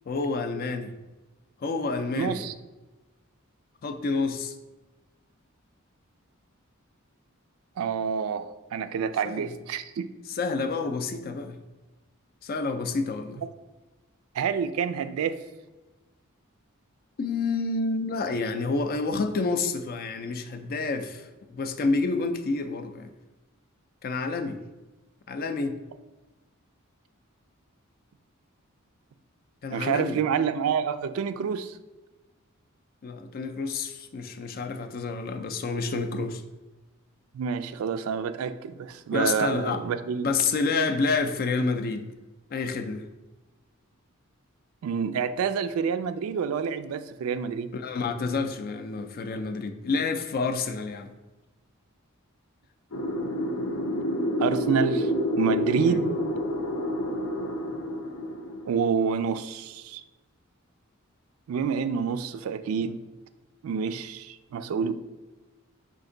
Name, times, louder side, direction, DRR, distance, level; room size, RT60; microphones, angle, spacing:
voice 1, 0.1-0.9 1.6-2.4 3.8-4.5 9.2-9.5 10.3-11.6 12.4-13.4 17.2-23.1 24.0-24.6 25.3-25.8 29.6-30.2 33.0-36.4 39.1-39.8 40.2-42.1 42.5-43.0 47.7-51.1 55.9-56.0, left 4 dB, 45° left, 8 dB, 0.4 m, -29 dB
voice 2, 2.2-2.5 7.8-10.1 14.3-15.4 29.7-31.8 37.3-40.3 44.8-47.7 54.4-55.1 55.4-56.1 58.7-60.0 61.5-63.0 63.6-64.9, right 6 dB, 80° right, 11 dB, 0.3 m, -28 dB
sound 1, 52.9-59.1, equal, 80° left, 0.7 m, -28 dB
5.2 x 2.5 x 3.8 m, 1.1 s
head